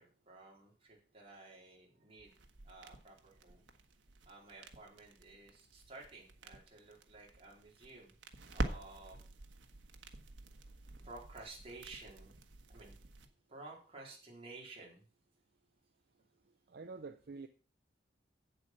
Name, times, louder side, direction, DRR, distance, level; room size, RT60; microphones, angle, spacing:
voice 1, 0.0-2.4 2.6-3.6 4.3-8.1 8.5-9.2 11.0-12.3 12.7-13.0 13.5-15.1, right 2 dB, 35° right, -2 dB, 3.9 m, -53 dB
sound 1, 2.3-13.3, right 1 dB, 80° right, 1.3 m, -47 dB
voice 2, 16.7-17.5, right 4 dB, 60° right, 10 dB, 0.5 m, -47 dB
8.4 x 7.9 x 5.9 m, 0.39 s
head